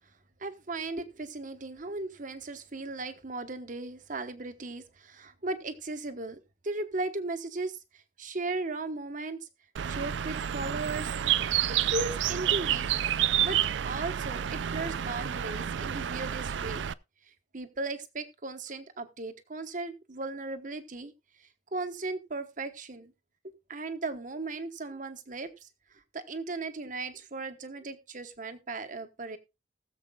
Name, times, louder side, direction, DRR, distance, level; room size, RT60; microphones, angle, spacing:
voice 1, 0.4-9.4 9.9-11.1 11.8-12.9 13.4-13.6 13.9-16.9 17.3-21.1 21.4-23.1 23.7-25.7 26.1-29.4, right 3 dB, 45° right, 9 dB, 1.1 m, -37 dB
Bird, 9.8-16.9, right 10 dB, 85° right, 0.4 m, -29 dB
19.5 x 7.3 x 2.3 m, 0.25 s
head